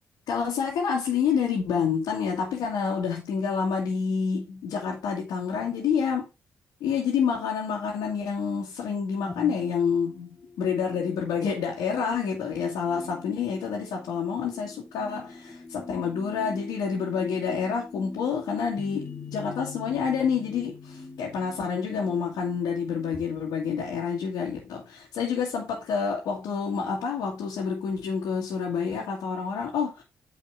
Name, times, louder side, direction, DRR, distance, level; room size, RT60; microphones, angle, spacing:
voice 1, 0.3-6.3 6.8-30.0, left 6 dB, 75° left, 2.0 m, -28 dB
sound 1, 9.3-23.2, left 3 dB, 30° left, 1.8 m, -43 dB
9.0 x 4.2 x 3.6 m
hypercardioid pair, 45°, 7 cm